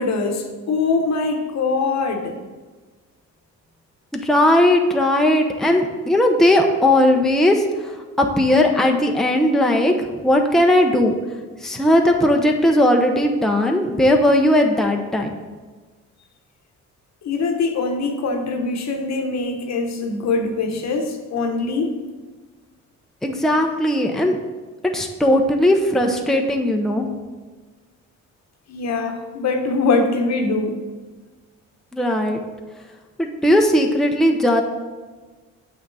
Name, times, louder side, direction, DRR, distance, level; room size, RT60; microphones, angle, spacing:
voice 1, 0.0-2.4 17.2-22.0 28.7-30.8, left 3 dB, 60° left, 4 dB, 1.2 m, -23 dB
voice 2, 4.2-11.1 11.6-15.3 23.2-24.4 24.9-27.1 31.9-32.4 33.2-34.6, left 1 dB, ahead, 2 dB, 0.8 m, -18 dB
7.8 x 5.8 x 4.1 m, 1.3 s
cardioid pair, 90°, 30 cm